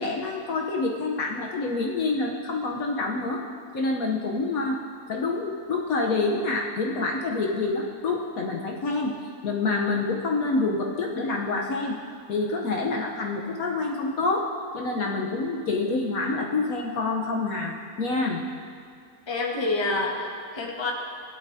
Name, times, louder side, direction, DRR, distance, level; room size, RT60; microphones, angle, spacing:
voice 1, 0.0-3.4 3.7-4.8 5.1-9.1 9.4-12.0 12.3-18.4, left 3 dB, 65° left, 0 dB, 1.2 m, -27 dB
voice 2, 19.3-20.9, left 2 dB, 15° left, -2 dB, 1.3 m, -27 dB
18.0 x 11.5 x 2.7 m, 2.3 s
omnidirectional pair, 1.7 m